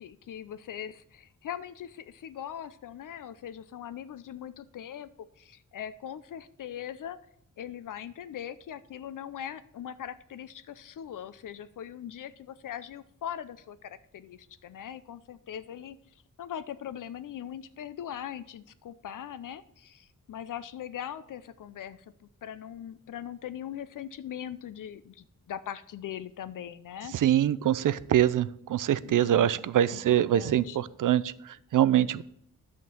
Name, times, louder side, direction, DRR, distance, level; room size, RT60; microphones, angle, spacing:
voice 1, 0.0-5.1 5.4-7.2 7.6-27.1 29.0-30.8, left 10 dB, 75° left, 14 dB, 0.5 m, -41 dB
voice 2, 27.1-32.2, right 11 dB, 75° right, 17 dB, 0.5 m, -24 dB
11.0 x 3.7 x 7.5 m, 0.70 s
wide cardioid pair, 160°, 32 cm